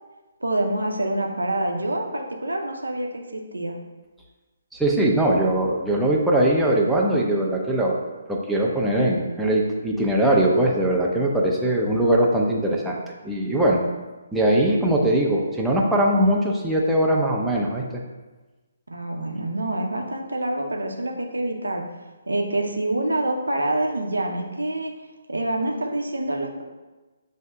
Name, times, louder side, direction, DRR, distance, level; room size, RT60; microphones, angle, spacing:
voice 1, 0.4-3.8 18.9-21.8 22.3-24.9 25.3-26.7, right 1 dB, 80° right, 1 dB, 0.6 m, -26 dB
voice 2, 4.7-8.0 8.3-13.0 13.2-13.8 14.3-17.8, right 1 dB, 5° right, -3 dB, 0.5 m, -21 dB
7.1 x 2.7 x 2.2 m, 1.2 s
figure-of-eight pair, 140°, 0 cm